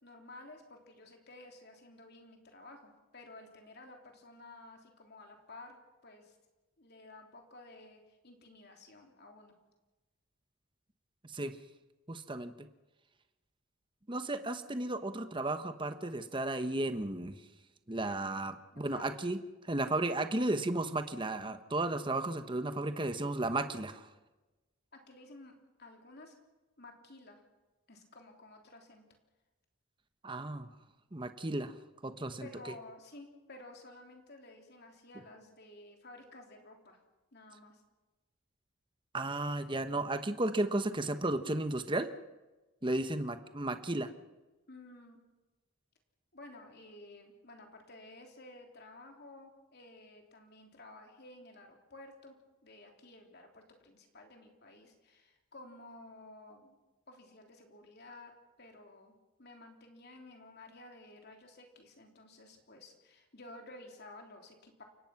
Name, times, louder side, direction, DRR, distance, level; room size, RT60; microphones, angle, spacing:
voice 1, 0.0-6.4 6.8-9.5 18.7-19.2 22.5-22.8 24.9-26.4 26.8-27.4 27.9-29.0 32.4-37.0 37.3-37.8 44.7-45.2 46.3-52.4 52.6-56.8 57.1-58.3 58.6-64.8, left 2 dB, 50° left, 3 dB, 3.5 m, -53 dB
voice 2, 12.1-12.7 14.1-17.4 17.9-24.1 30.2-30.7 31.1-31.7 32.0-32.7 39.1-42.1 42.8-44.1, right 2 dB, 20° right, 9 dB, 1.0 m, -34 dB
29.0 x 17.0 x 6.0 m, 1.1 s
head